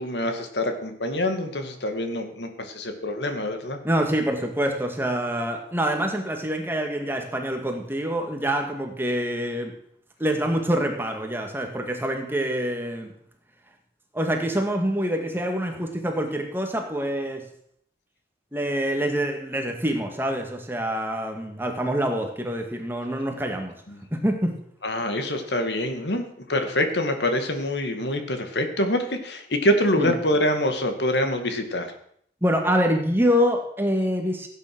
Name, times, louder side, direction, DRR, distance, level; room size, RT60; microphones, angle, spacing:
voice 1, 0.0-3.8 23.9-24.0 24.8-31.9, left 1 dB, 70° left, 6 dB, 2.2 m, -25 dB
voice 2, 3.8-9.7 10.2-13.1 14.1-17.5 18.5-23.8 24.1-24.6 30.0-30.1 32.4-34.5, equal, 10° right, 3 dB, 2.0 m, -26 dB
16.5 x 9.5 x 6.2 m, 0.66 s
head